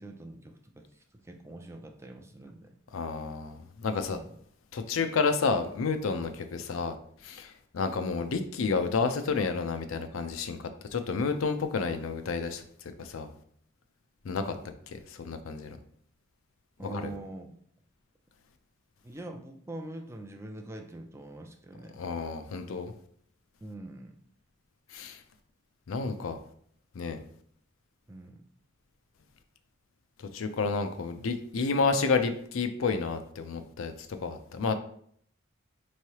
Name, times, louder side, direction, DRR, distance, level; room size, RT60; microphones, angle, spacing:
voice 1, 0.0-2.7 4.1-4.4 6.6-6.7 16.8-17.5 19.0-21.9 23.6-24.2 28.1-28.5, right 2 dB, 15° right, 4 dB, 0.3 m, -44 dB
voice 2, 2.9-4.2 4.7-6.9 7.2-12.6 13.0-13.3 14.2-14.5 14.9-15.8 16.8-17.1 22.0-22.9 24.9-25.2 25.9-26.4 26.9-27.2 30.2-33.9 34.2-34.7, left 4 dB, 85° left, 8 dB, 0.5 m, -30 dB
4.5 x 3.2 x 2.8 m, 0.62 s
head